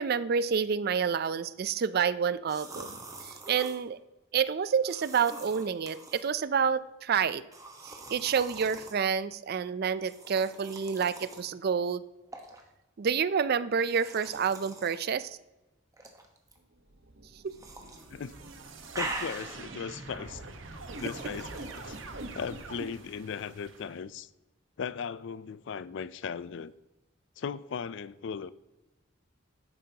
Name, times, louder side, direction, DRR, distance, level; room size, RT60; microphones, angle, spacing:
voice 1, 0.0-4.0 4.3-7.4 7.8-12.0 13.0-15.4 17.4-17.6, right 6 dB, 50° right, 0.4 m, -29 dB
sound 1, 2.5-3.8 4.8-6.2 7.5-9.0 10.0-11.5 12.3-12.6 13.8-15.0 15.9-16.6 17.5-18.0 18.4-19.8 20.9-22.0, right 2 dB, 15° right, 1.1 m, -43 dB
sound 2, 16.9-24.0, right 2 dB, 70° right, 1.1 m, -44 dB
voice 2, 19.0-20.4 21.0-21.5 21.8-22.0 22.3-24.3 24.8-26.7 27.4-28.5, left 6 dB, 65° left, 0.4 m, -37 dB
11.0 x 9.1 x 2.8 m
head